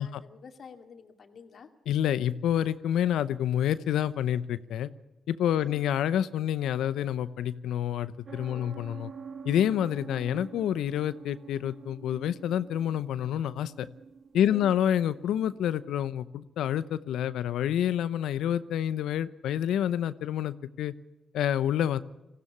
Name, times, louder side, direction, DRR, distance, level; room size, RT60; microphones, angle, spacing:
voice 1, 0.0-1.7 5.5-5.9 8.5-8.8 14.5-14.8, left 6 dB, 60° left, 6 dB, 2.3 m, -49 dB
voice 2, 1.9-4.9 5.3-9.1 9.4-13.9 14.3-20.9 21.3-22.0, left 10 dB, 80° left, 15 dB, 0.8 m, -28 dB
sound 1, 8.3-15.7, right 6 dB, 60° right, 2.1 m, -47 dB
20.0 x 15.5 x 10.0 m, 0.99 s
supercardioid pair, 55°, 0 cm